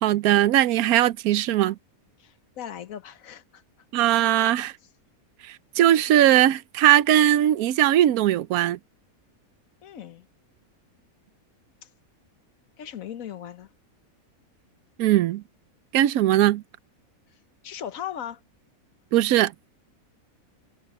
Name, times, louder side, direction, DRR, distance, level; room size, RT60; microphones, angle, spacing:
voice 1, 0.0-1.8 3.9-4.7 5.4-8.8 15.0-15.4 15.9-16.6 19.1-19.5, right 12 dB, 80° right, 1.1 m, -20 dB
voice 2, 2.2-3.6 9.8-10.3 11.8-11.9 12.8-13.7 17.6-18.4, left 10 dB, 70° left, 1.3 m, -38 dB
omnidirectional pair, 1.5 m